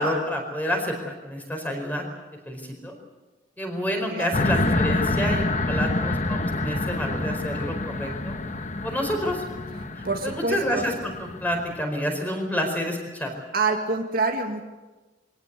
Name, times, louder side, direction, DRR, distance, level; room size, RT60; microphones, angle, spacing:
voice 1, 0.0-2.0 2.5-2.9 3.6-8.3 8.8-9.4 10.0-13.3, equal, 10° left, 2 dB, 4.8 m, -28 dB
sound 1, 4.3-11.8, left 2 dB, 40° left, 1.2 m, -27 dB
voice 2, 10.0-10.9 13.5-14.6, right 3 dB, 50° right, 3 dB, 2.0 m, -26 dB
23.5 x 18.5 x 8.4 m, 1.2 s
head